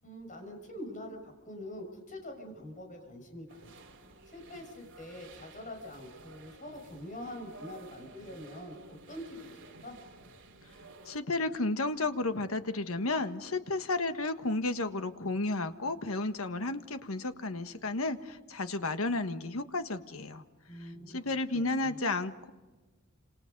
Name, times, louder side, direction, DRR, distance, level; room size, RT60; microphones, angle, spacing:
voice 1, 0.0-3.7 4.3-10.0 20.7-22.0, left 1 dB, 35° left, 2 dB, 6.1 m, -45 dB
sound 1, 3.5-11.2, right 3 dB, 60° right, 3.4 m, -53 dB
voice 2, 11.0-20.4 21.1-22.5, left 2 dB, 75° left, 9 dB, 1.5 m, -32 dB
29.0 x 27.0 x 5.4 m, 1.2 s
head